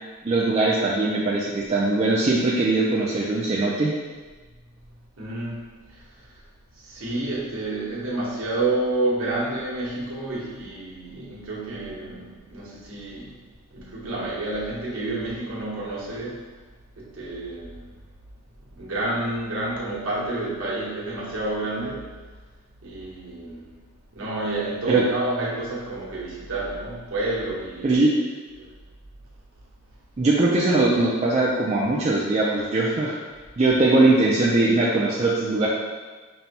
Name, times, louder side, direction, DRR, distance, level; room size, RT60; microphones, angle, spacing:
voice 1, 0.2-3.9 24.9-25.0 27.8-28.1 30.2-33.2 33.6-35.7, right 2 dB, 30° right, -5 dB, 0.3 m, -21 dB
voice 2, 5.2-5.6 5.9-6.0 6.7-13.4 13.7-16.4 17.0-17.8 18.7-22.1 22.8-23.7 24.1-28.0 28.6-28.7, right 2 dB, 70° right, -6 dB, 1.0 m, -29 dB
5.4 x 2.2 x 2.8 m, 1.3 s
head